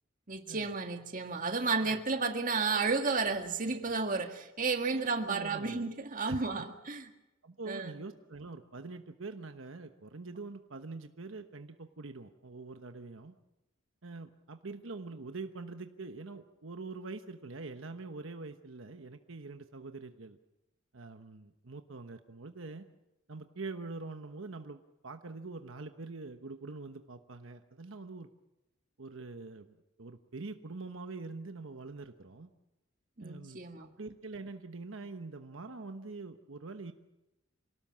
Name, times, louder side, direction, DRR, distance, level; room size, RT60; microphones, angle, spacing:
voice 1, 0.3-7.1 7.7-7.9 33.2-33.9, right 4 dB, 40° right, 6 dB, 1.8 m, -32 dB
voice 2, 4.9-5.8 6.2-6.7 7.4-13.3 14.0-20.4 20.9-22.9 23.3-28.3 29.0-32.5 33.2-36.9, right 3 dB, 75° right, 7 dB, 1.1 m, -44 dB
27.0 x 18.0 x 7.5 m, 0.95 s
head